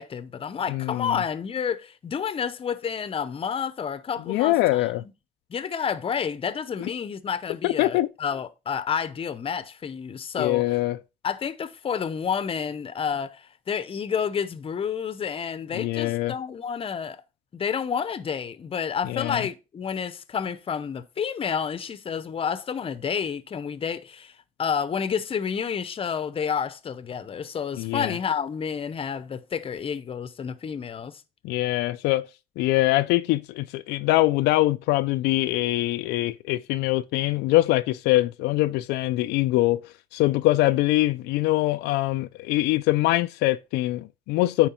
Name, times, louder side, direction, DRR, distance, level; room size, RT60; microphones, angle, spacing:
voice 1, 0.0-4.8 5.5-10.6 11.2-17.2 17.5-24.3 24.6-31.2, left 7 dB, 35° left, 0.8 m, -30 dB
voice 2, 0.7-1.2 4.3-5.0 6.8-6.9 7.6-8.1 10.4-11.0 15.7-16.4 19.0-19.5 27.8-28.2 31.4-32.3 32.6-44.7, left 17 dB, 90° left, 0.4 m, -23 dB
9.0 x 4.6 x 4.4 m
cardioid pair, 110°, 17 cm